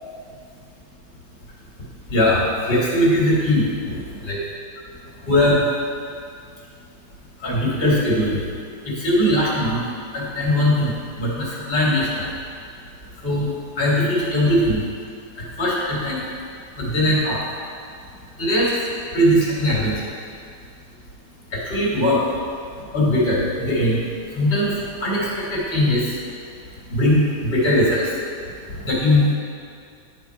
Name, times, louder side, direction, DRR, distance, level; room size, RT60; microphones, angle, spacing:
voice 1, 2.1-4.0 4.2-4.4 5.3-5.6 7.4-8.4 8.9-9.8 10.1-12.2 13.2-13.5 13.8-14.8 15.6-16.2 16.8-17.4 18.4-18.7 19.1-19.9 21.5-22.2 22.9-24.0 24.3-24.7 25.0-26.0 26.9-28.0 28.8-29.3, left 1 dB, 30° left, -6 dB, 1.9 m, -20 dB
10.5 x 3.6 x 4.6 m, 2.3 s
omnidirectional pair, 2.1 m